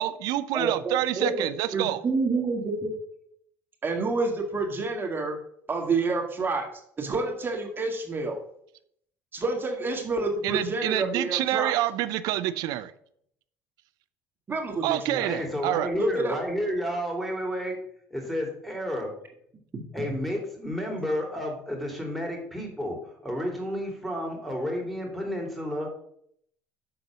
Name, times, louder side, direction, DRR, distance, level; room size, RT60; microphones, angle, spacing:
voice 1, 0.0-2.0 10.4-12.9 14.8-15.9, right 14 dB, 70° right, 0.5 m, -27 dB
voice 2, 0.5-3.0 3.8-5.4 5.7-6.7 7.0-8.4 9.3-11.8 14.5-15.3 16.0-16.4 19.7-20.2, right 3 dB, 30° right, 1.9 m, -28 dB
voice 3, 15.2-17.8 18.1-19.1 19.9-25.9, equal, ahead, 2.8 m, -31 dB
6.8 x 3.9 x 6.1 m
supercardioid pair, 80°, 7 cm